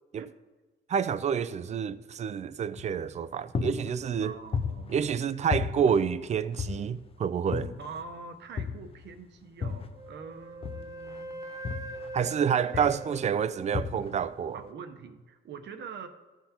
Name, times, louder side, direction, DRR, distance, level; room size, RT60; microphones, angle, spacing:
voice 1, 0.9-4.3 4.9-7.7 12.1-14.6, right 7 dB, 35° right, 0.4 m, -28 dB
sound 1, 2.8-3.2 3.5-5.2 5.5-7.1 7.5-8.1 8.6-10.1 10.6-12.4 12.7-13.2 13.7-14.3, left 5 dB, 30° left, 0.4 m, -35 dB
voice 2, 4.2-5.1 7.8-11.5 12.7-12.9 14.5-16.1, right 5 dB, 60° right, 0.9 m, -44 dB
Wind instrument woodwind instrument, 9.9-14.1, right 2 dB, 15° right, 0.9 m, -43 dB
15.0 x 5.9 x 2.9 m
cardioid pair, 135°, 20 cm